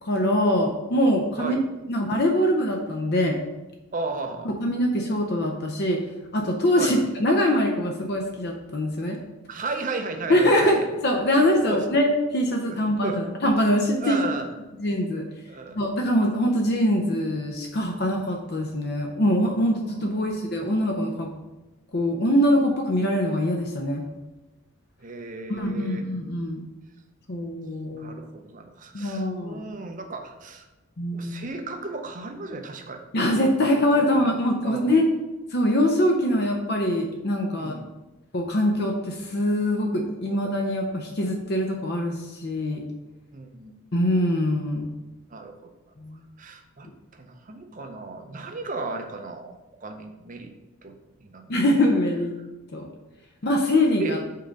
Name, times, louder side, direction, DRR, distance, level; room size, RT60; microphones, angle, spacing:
voice 1, 0.0-1.6 1.9-3.4 4.5-6.0 6.3-9.2 10.3-10.8 11.0-14.2 14.8-15.2 15.8-21.3 21.9-24.0 25.5-26.6 27.3-28.2 28.9-29.6 31.0-31.3 33.1-35.1 35.5-37.7 38.3-42.8 43.9-44.9 46.0-46.3 51.5-52.3 52.7-52.9 53.4-54.2, left 1 dB, 45° left, 2 dB, 0.6 m, -23 dB
voice 2, 1.4-1.7 3.9-4.5 6.8-7.0 9.5-10.9 11.6-11.8 12.7-13.2 14.0-14.5 15.5-15.8 19.9-20.3 25.0-26.1 27.9-30.6 31.1-33.0 33.7-35.0 37.5-37.9 40.3-40.4 43.3-43.7 45.3-45.7 46.4-46.9 47.1-50.5 50.8-51.0 51.2-51.5 52.4-52.5 54.0-54.2, right 3 dB, 35° right, 5 dB, 0.6 m, -35 dB
5.5 x 3.8 x 5.1 m, 1.1 s
head